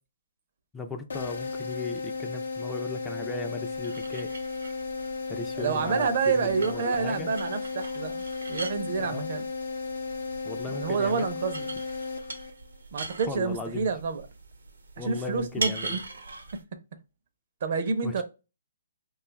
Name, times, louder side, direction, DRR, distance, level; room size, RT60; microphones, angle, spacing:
voice 1, 0.7-4.3 5.3-7.3 9.0-9.3 10.4-11.3 13.3-13.9 15.0-16.0 18.0-18.2, left 3 dB, 10° left, 0.4 m, -37 dB
sound 1, 1.1-12.8, left 4 dB, 80° left, 0.6 m, -34 dB
sound 2, 3.6-16.6, right 3 dB, 85° right, 0.8 m, -41 dB
voice 2, 5.6-8.2 8.5-9.4 10.7-11.7 12.9-14.2 15.0-16.0 17.6-18.2, right 5 dB, 55° right, 0.6 m, -28 dB
2.7 x 2.4 x 3.9 m
hypercardioid pair, 150°, 0 cm